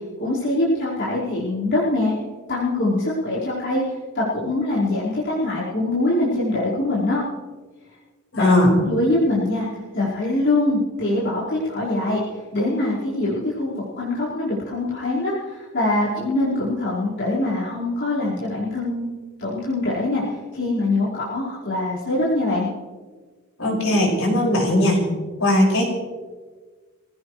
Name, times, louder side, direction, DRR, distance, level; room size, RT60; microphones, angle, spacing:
voice 1, 0.2-2.1 2.5-3.8 4.1-7.2 8.3-9.7 9.9-12.2 12.5-20.2 20.5-22.7, left 2 dB, 60° left, -9 dB, 4.9 m, -23 dB
voice 2, 8.3-8.7 23.6-25.0 25.4-26.0, left 1 dB, 75° left, -2 dB, 6.0 m, -18 dB
26.0 x 16.5 x 3.3 m, 1.4 s
head